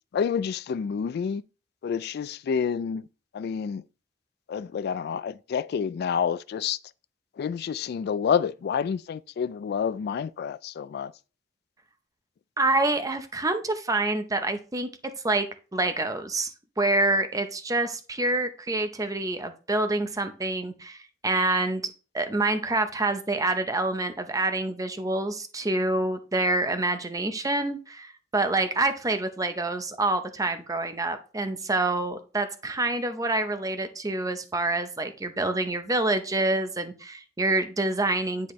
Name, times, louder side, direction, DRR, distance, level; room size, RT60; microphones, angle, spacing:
voice 1, 0.1-1.4 1.8-3.1 3.3-3.8 4.5-6.8 7.4-11.1, left 7 dB, 55° left, 0.3 m, -28 dB
voice 2, 12.6-14.9 15.2-15.5 15.7-21.8 22.1-38.5, right 2 dB, 20° right, 0.7 m, -27 dB
9.9 x 4.2 x 3.1 m
head